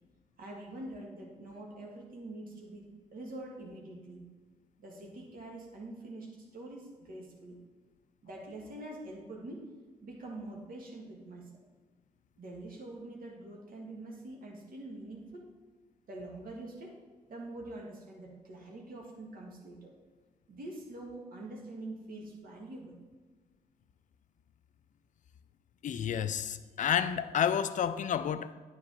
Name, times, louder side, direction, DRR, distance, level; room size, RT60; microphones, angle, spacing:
voice 1, 0.4-4.3 4.8-7.6 8.2-9.7 10.0-11.7 12.4-15.5 16.1-16.9 17.3-19.9 20.5-23.0, right 2 dB, 45° right, 1.8 m, -45 dB
voice 2, 25.8-28.5, left 8 dB, 40° left, 0.5 m, -30 dB
9.3 x 4.0 x 6.5 m
figure-of-eight pair, 40°, 20 cm